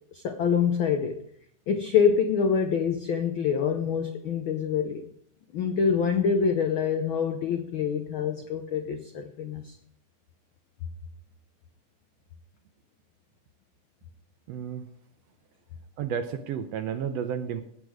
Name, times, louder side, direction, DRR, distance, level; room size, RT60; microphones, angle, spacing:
voice 1, 0.1-1.2 1.7-5.0 5.5-9.7, left 6 dB, 85° left, 6 dB, 1.1 m, -26 dB
voice 2, 14.5-14.9 16.0-17.6, right 8 dB, 75° right, 8 dB, 1.6 m, -31 dB
17.5 x 8.2 x 4.8 m, 0.70 s
omnidirectional pair, 3.5 m